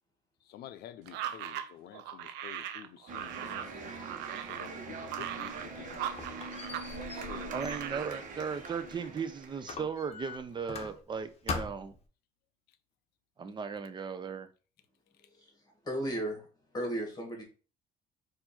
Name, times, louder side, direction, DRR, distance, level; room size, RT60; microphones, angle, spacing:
voice 1, 0.4-3.8 4.4-6.5 7.0-7.6 7.8-8.2 12.7-12.8 15.2-15.5, left 11 dB, 70° left, 0.5 m, -50 dB
sound 1, 1.1-6.9 7.2-8.1, right 11 dB, 90° right, 0.5 m, -39 dB
sound 2, 3.1-9.8, right 3 dB, 50° right, 1.1 m, -43 dB
Squeak, 5.4-9.2 9.7-11.2 11.5-12.0, left 4 dB, 40° left, 0.9 m, -42 dB
voice 2, 7.5-12.0 13.4-14.5, right 6 dB, 25° right, 0.6 m, -37 dB
voice 3, 15.8-16.5 16.7-17.4, right 1 dB, 25° left, 1.8 m, -34 dB
4.4 x 2.6 x 4.2 m
cardioid pair, 110°, 17 cm